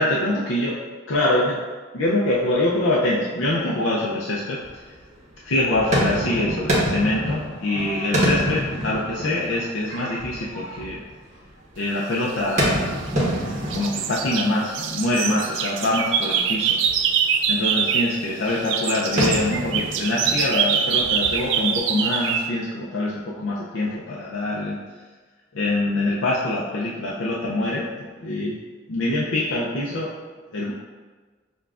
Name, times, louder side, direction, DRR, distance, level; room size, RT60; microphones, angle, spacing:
voice 1, 0.0-0.8 1.1-1.6 1.9-4.6 5.4-11.0 11.8-13.0 13.7-16.8 17.5-24.8 25.5-27.8 28.2-28.6 28.9-30.1 30.5-30.7, left 1 dB, 85° left, -5 dB, 0.5 m, -24 dB
sound 1, 4.6-5.2 5.5-11.5 12.3-15.0 15.2-15.4 16.1-16.2 16.4-16.5 16.8-17.2 17.6-18.2 18.9-21.8, equal, 40° right, 1.1 m, -27 dB
sound 2, 12.6-13.4 13.7-18.2 18.5-22.5, right 7 dB, 70° right, 0.3 m, -24 dB
6.7 x 2.3 x 2.4 m, 1.4 s
head